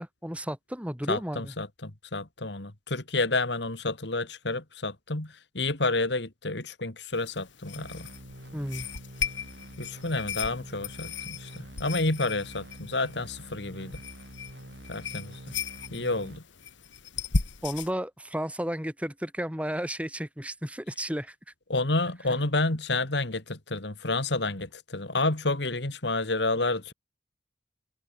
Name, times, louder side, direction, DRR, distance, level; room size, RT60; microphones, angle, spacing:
voice 1, 0.0-1.5 8.5-8.9 17.6-21.3 22.3-22.4, equal, 5° right, 7.5 m, -33 dB
voice 2, 1.1-8.1 9.8-11.5 11.8-13.9 14.9-15.4 15.9-16.4 21.7-26.9, left 2 dB, 65° left, 2.5 m, -29 dB
sound 1, 7.1-17.9, left 5 dB, 85° left, 1.5 m, -37 dB
sound 2, 7.8-16.4, equal, 65° right, 7.4 m, -46 dB
head